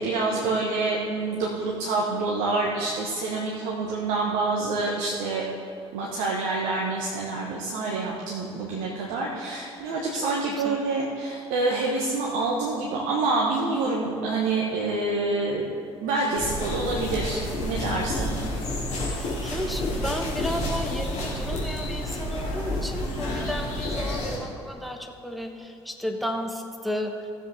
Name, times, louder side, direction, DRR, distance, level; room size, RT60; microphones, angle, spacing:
voice 1, 0.0-5.4 5.9-15.7 16.0-18.3, right 3 dB, 60° right, -2 dB, 1.2 m, -27 dB
sound 1, 16.4-24.4, left 1 dB, 50° left, 2.7 m, -30 dB
voice 2, 19.1-27.1, left 1 dB, ahead, 4 dB, 1.1 m, -33 dB
16.0 x 7.4 x 3.5 m, 2.6 s
figure-of-eight pair, 55°, 15 cm